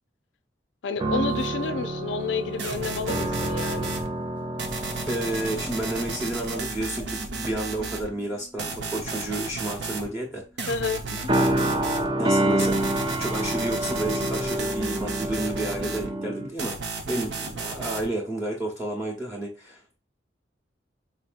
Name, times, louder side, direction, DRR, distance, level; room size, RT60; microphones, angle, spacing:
voice 1, 0.8-4.0 10.7-11.0, left 5 dB, 75° left, 0.4 m, -30 dB
sound 1, 1.0-7.1 7.4-7.7 8.7-9.4 11.3-16.5, right 1 dB, 25° right, 0.5 m, -28 dB
sound 2, 2.6-4.1 4.6-8.1 8.6-10.1 10.6-12.1 12.6-16.1 16.6-18.1, right 3 dB, 70° right, 0.7 m, -34 dB
voice 2, 5.1-10.4 11.1-11.2 12.2-12.8 13.2-16.8 17.1-19.8, right 1 dB, 5° right, 0.8 m, -31 dB
4.3 x 2.7 x 2.5 m
head